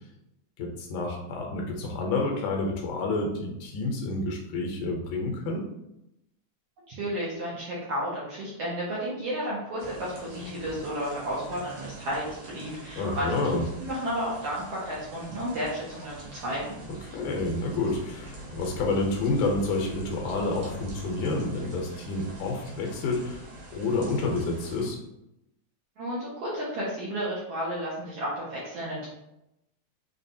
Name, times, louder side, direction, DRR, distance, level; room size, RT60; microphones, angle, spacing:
voice 1, 0.6-5.6 12.9-13.7 17.1-23.4 23.7-25.0, left 3 dB, 80° left, 1 dB, 2.3 m, -29 dB
voice 2, 6.9-13.3 13.5-16.7 26.0-29.1, equal, 70° right, -7 dB, 1.5 m, -32 dB
sound 1, 9.8-24.9, right 2 dB, 85° right, 2.7 m, -44 dB
5.6 x 2.4 x 2.6 m, 0.85 s
omnidirectional pair, 3.6 m